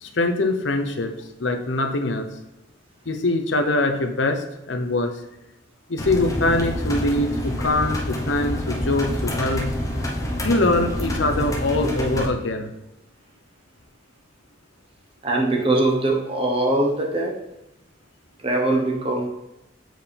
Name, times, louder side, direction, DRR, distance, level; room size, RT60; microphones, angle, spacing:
voice 1, 0.0-1.1 1.4-2.3 3.1-5.2 5.9-9.6 10.4-12.7, left 2 dB, 75° left, 6 dB, 0.8 m, -23 dB
sound 1, 6.0-12.3, left 1 dB, 20° left, 1.0 m, -27 dB
voice 2, 15.2-17.4 18.4-19.3, right 2 dB, 30° right, 0 dB, 1.2 m, -21 dB
7.6 x 4.7 x 3.5 m, 0.89 s
head